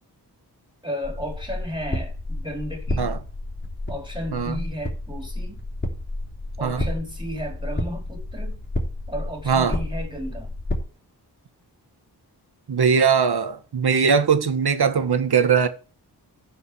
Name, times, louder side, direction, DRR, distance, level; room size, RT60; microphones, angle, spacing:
voice 1, 0.8-3.2 3.9-5.6 6.6-8.6 9.1-10.5, equal, 10° right, 4.3 m, -33 dB
sound 1, 1.0-10.8, left 1 dB, 25° left, 3.6 m, -31 dB
voice 2, 9.5-9.8 12.7-15.7, right 6 dB, 65° right, 1.6 m, -20 dB
10.0 x 5.4 x 7.8 m
wide cardioid pair, 90°, 41 cm